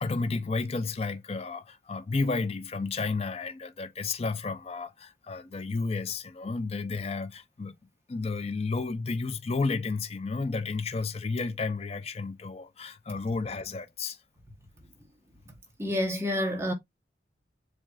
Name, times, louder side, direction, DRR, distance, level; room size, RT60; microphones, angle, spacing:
voice 1, 0.0-7.7 8.1-14.2, left 3 dB, 35° left, 0.4 m, -32 dB
voice 2, 15.8-16.7, left 1 dB, 15° right, 1.0 m, -28 dB
7.2 x 2.5 x 2.4 m
head